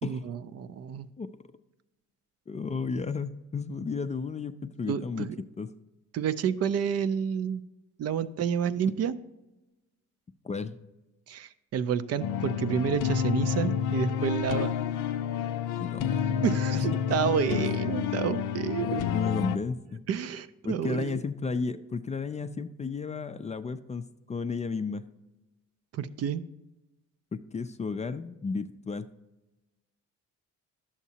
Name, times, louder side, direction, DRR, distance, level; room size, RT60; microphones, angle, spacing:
voice 1, 0.0-1.1 4.9-5.4 6.1-7.6 8.0-9.2 11.3-14.7 16.4-19.0 20.1-21.2 25.9-26.4, right 7 dB, 55° right, 13 dB, 0.5 m, -29 dB
voice 2, 2.5-5.3 5.6-5.7 10.4-10.8 15.8-16.5 18.8-20.0 20.6-25.0 27.3-29.1, left 4 dB, 25° left, 10 dB, 0.3 m, -33 dB
sound 1, 12.2-19.6, left 8 dB, 85° left, 0.5 m, -29 dB
11.0 x 7.2 x 2.8 m, 1.0 s
cardioid pair, 90°, 30 cm